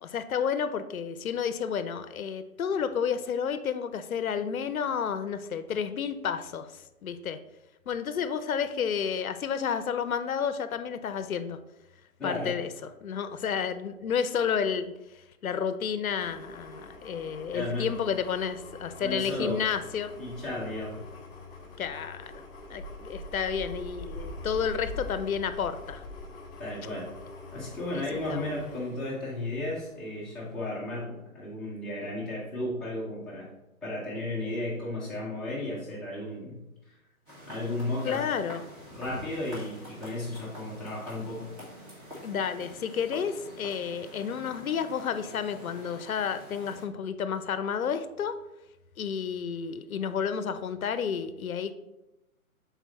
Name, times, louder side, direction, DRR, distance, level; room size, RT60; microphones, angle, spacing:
voice 1, 0.0-6.7 7.0-7.4 7.9-11.6 12.2-14.9 15.4-20.2 21.8-22.3 22.7-26.0 27.9-28.0 28.3-28.5 38.0-38.6 42.2-48.4 49.0-51.7, left 7 dB, 75° left, 12 dB, 0.6 m, -31 dB
voice 2, 12.2-12.5 17.5-17.9 19.0-19.6 20.2-21.0 26.6-27.1 27.5-33.5 33.8-36.6 36.9-37.0 37.5-38.3 38.9-41.5, left 1 dB, ahead, -9 dB, 0.6 m, -34 dB
sound 1, 16.2-29.9 30.3-30.5, left 2 dB, 20° left, 1.6 m, -43 dB
sound 2, 37.3-46.8, equal, 20° right, 1.3 m, -46 dB
6.2 x 4.0 x 4.0 m, 0.94 s
figure-of-eight pair, 135°, 42 cm